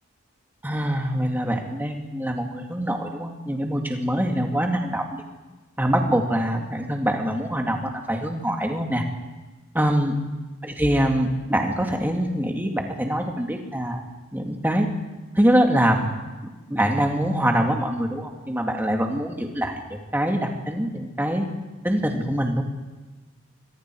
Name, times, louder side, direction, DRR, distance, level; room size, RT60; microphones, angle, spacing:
voice 1, 0.6-5.2 5.8-9.0 9.7-10.2 10.6-14.0 14.3-14.9 15.3-16.1 16.7-21.5 21.8-22.6, equal, 10° right, 2 dB, 2.5 m, -24 dB
27.0 x 23.0 x 4.9 m, 1.2 s
head